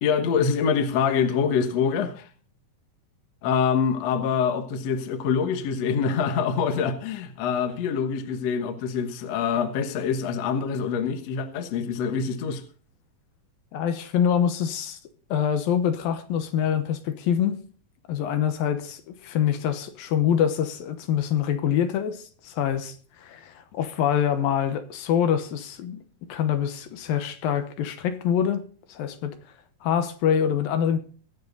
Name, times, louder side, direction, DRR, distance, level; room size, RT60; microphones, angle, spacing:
voice 1, 0.0-2.3 3.4-12.6, left 6 dB, 60° left, 2.0 m, -25 dB
voice 2, 13.7-15.0 15.3-17.6 18.1-26.0 26.3-29.4 29.8-31.0, left 9 dB, 75° left, 2.8 m, -25 dB
23.0 x 7.6 x 4.0 m
omnidirectional pair, 4.2 m